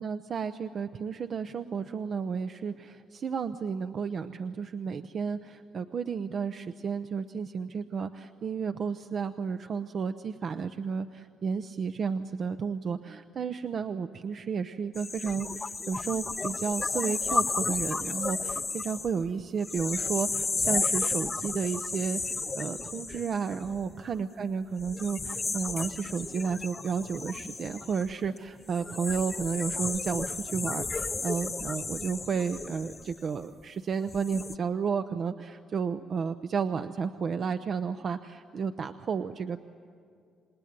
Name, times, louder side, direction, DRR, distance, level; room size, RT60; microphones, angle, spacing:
voice 1, 0.0-39.6, right 6 dB, 55° right, 10 dB, 0.7 m, -32 dB
sound 1, 14.9-24.2 24.8-33.5 34.0-34.5, left 3 dB, 30° left, 0.6 m, -33 dB
27.0 x 19.5 x 9.5 m, 2.3 s
cardioid pair, 90°, 0 cm